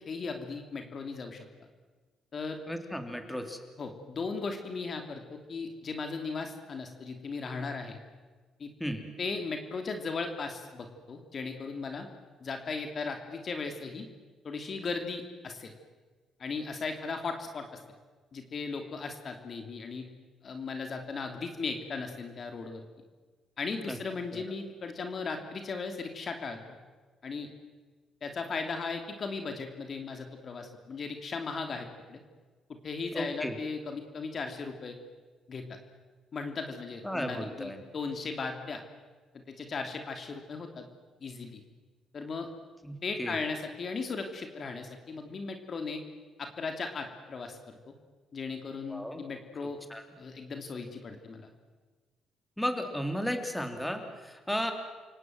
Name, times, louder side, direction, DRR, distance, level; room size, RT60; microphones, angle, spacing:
voice 1, 0.1-1.4 2.3-2.6 3.8-8.0 8.6-8.7 9.2-12.1 12.4-14.0 14.4-15.7 16.4-17.8 18.3-20.0 20.4-22.8 23.6-26.8 27.2-27.5 28.2-32.2 32.7-35.0 35.5-35.6 36.3-38.8 39.5-40.9 41.2-41.6 42.1-42.5 43.0-46.0 46.4-47.9 48.3-49.8 50.2-51.5, left 4 dB, 50° left, 5 dB, 3.0 m, -37 dB
voice 2, 2.7-3.6 8.8-9.0 23.9-24.0 24.3-24.4 33.1-33.5 37.0-37.8 42.8-43.4 48.9-49.2 49.9-50.0 52.6-54.7, equal, 5° left, 5 dB, 3.6 m, -34 dB
29.0 x 17.5 x 7.8 m, 1.4 s
cardioid pair, 75°, 0 cm